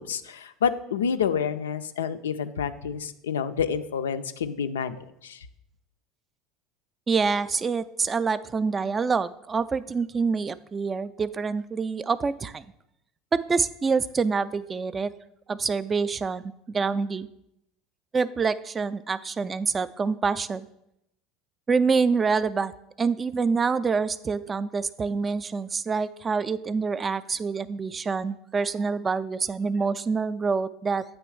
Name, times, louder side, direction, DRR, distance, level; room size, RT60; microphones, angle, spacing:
voice 1, 0.0-5.4, left 7 dB, 80° left, 11 dB, 0.3 m, -28 dB
voice 2, 7.1-12.6 13.3-15.1 15.5-17.3 18.1-20.7 21.7-22.7 23.0-31.0, right 5 dB, 25° right, 14 dB, 0.3 m, -26 dB
8.7 x 3.1 x 4.6 m, 0.80 s
hypercardioid pair, 75°, 0 cm